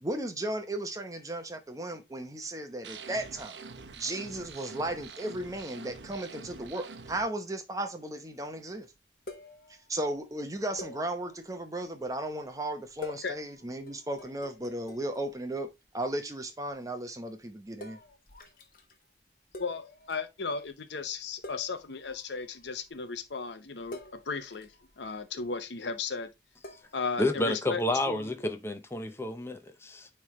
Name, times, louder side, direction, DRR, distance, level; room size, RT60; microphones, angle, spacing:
voice 1, 0.0-3.6 4.0-8.9 9.9-15.7 15.9-18.0, right 1 dB, 20° right, 0.8 m, -35 dB
sound 1, 2.8-7.2, right 4 dB, 85° right, 0.8 m, -46 dB
sound 2, 8.9-9.0 9.3-10.1 10.8-12.2 12.8-15.6 15.8-16.3 16.6-16.7 17.8-19.1 19.5-20.3 20.5-20.7 21.1-21.2 21.4-23.0 23.8-25.5 26.6-27.0, left 2 dB, 50° left, 1.2 m, -48 dB
voice 2, 19.6-24.7 25.0-26.3 26.9-27.8 28.1-28.3, left 4 dB, 85° left, 0.8 m, -35 dB
voice 3, 27.2-30.1, left 1 dB, 15° left, 0.7 m, -30 dB
9.5 x 3.3 x 3.1 m
head